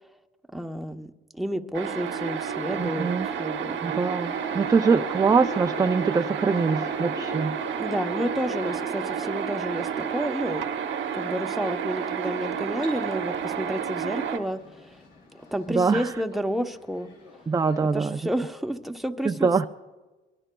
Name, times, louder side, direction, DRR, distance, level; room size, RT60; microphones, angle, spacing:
voice 1, 0.5-3.8 7.8-10.6 11.1-15.0 15.5-17.1 17.9-19.7, equal, ahead, 5 dB, 0.8 m, -30 dB
sound 1, 1.7-14.4, right 7 dB, 70° right, 1.0 m, -30 dB
voice 2, 2.8-3.3 3.8-7.6 15.7-16.1 17.5-18.2 19.3-19.7, right 5 dB, 20° right, 7 dB, 0.4 m, -23 dB
sound 2, 4.2-18.7, left 4 dB, 80° left, 3.1 m, -44 dB
25.5 x 22.0 x 2.3 m, 1.2 s
cardioid pair, 90°, 20 cm